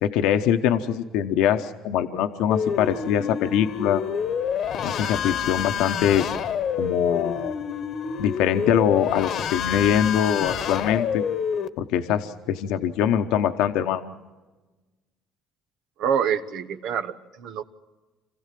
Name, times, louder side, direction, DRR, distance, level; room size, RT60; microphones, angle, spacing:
voice 1, 0.0-4.0 4.8-6.2 6.8-7.5 8.2-11.2 11.8-14.0, left 9 dB, 75° left, 7 dB, 1.1 m, -23 dB
sound 1, 2.5-11.7, left 7 dB, 55° left, 1.2 m, -28 dB
voice 2, 16.0-17.6, right 8 dB, 70° right, 10 dB, 1.3 m, -26 dB
26.5 x 15.5 x 7.6 m, 1.2 s
supercardioid pair, 90°, 0 cm